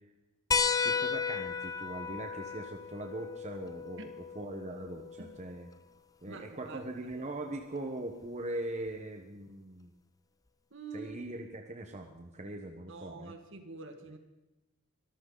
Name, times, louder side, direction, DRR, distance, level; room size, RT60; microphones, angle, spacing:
sound 1, 0.5-5.6 7.1-7.2 8.9-9.0, left 5 dB, 15° left, 0.6 m, -34 dB
voice 1, 0.8-5.7 6.2-9.9 10.9-13.4, right 1 dB, 35° right, 3 dB, 1.2 m, -41 dB
voice 2, 6.3-7.1 10.7-11.2 12.9-14.2, right 3 dB, 60° right, 6 dB, 2.0 m, -46 dB
24.0 x 14.0 x 4.0 m, 0.99 s
head